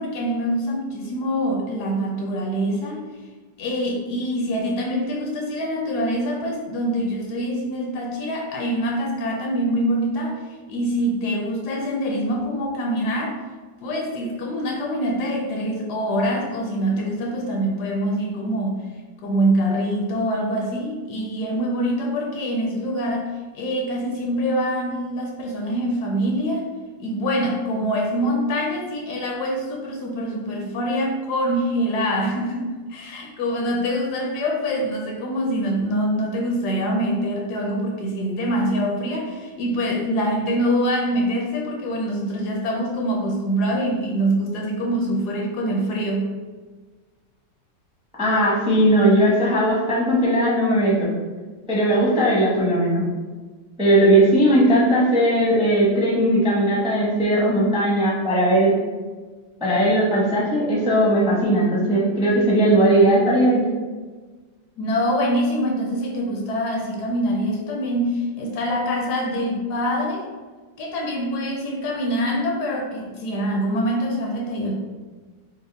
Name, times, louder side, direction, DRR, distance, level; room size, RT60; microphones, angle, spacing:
voice 1, 0.0-3.0 3.6-10.4 10.7-13.4 13.8-18.8 19.2-23.3 23.5-26.7 27.0-46.3 64.8-70.3 70.8-74.7, equal, 70° left, 0 dB, 1.0 m, -24 dB
voice 2, 48.2-51.1 51.7-53.0 53.8-58.7 59.6-63.6, right 1 dB, 5° right, -6 dB, 0.4 m, -18 dB
5.3 x 2.0 x 3.3 m, 1.4 s
omnidirectional pair, 1.9 m